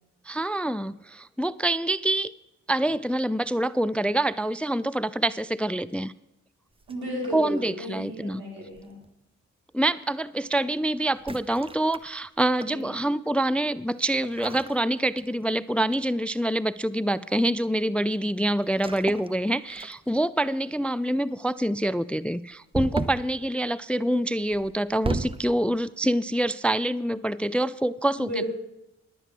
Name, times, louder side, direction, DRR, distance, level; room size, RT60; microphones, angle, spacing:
voice 1, 0.3-2.3 2.7-6.1 7.3-8.4 9.7-28.3, right 1 dB, 5° left, 17 dB, 0.3 m, -26 dB
sound 1, 6.8-7.6 8.8-9.1 11.1-12.8 14.2-15.6 15.9-16.2 18.7-19.4 19.7-20.3 22.7-23.3 24.5-25.5, right 2 dB, 15° right, 0.9 m, -34 dB
voice 2, 6.9-9.0 12.7-12.9 28.2-28.5, equal, 90° right, -2 dB, 3.7 m, -34 dB
11.0 x 8.5 x 6.2 m, 0.90 s
hypercardioid pair, 40°, 35 cm